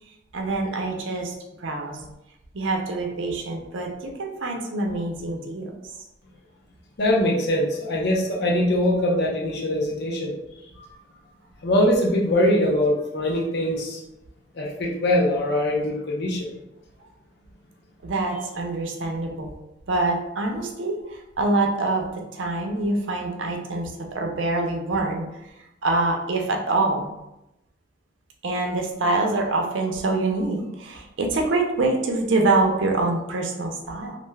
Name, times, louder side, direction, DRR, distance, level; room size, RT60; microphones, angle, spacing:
voice 1, 0.3-2.0 2.5-5.7 18.0-19.5 19.9-25.3 25.8-27.1 28.4-34.2, right 2 dB, 90° right, 2 dB, 0.5 m, -25 dB
voice 2, 7.0-10.3 10.8-10.9 11.6-14.0 14.5-16.5, left 1 dB, 60° left, -2 dB, 0.6 m, -22 dB
2.4 x 2.2 x 3.2 m, 0.90 s
head